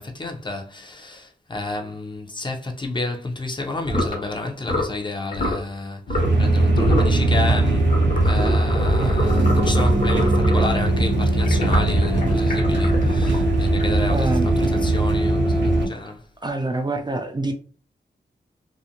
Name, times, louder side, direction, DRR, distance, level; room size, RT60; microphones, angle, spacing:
voice 1, 0.0-7.9 8.2-16.2, left 2 dB, 25° left, 0.6 m, -30 dB
sound 1, 3.8-4.2 4.6-5.0 5.3-5.6 6.1-6.4 6.7-7.2 7.9-10.7 11.4-14.2, left 1 dB, 45° left, 1.1 m, -26 dB
sound 2, 6.2-15.9, right 2 dB, 85° right, 0.6 m, -19 dB
voice 2, 14.1-14.5 16.4-17.6, right 2 dB, 25° right, 0.4 m, -26 dB
2.5 x 2.0 x 2.8 m
wide cardioid pair, 80°, 18 cm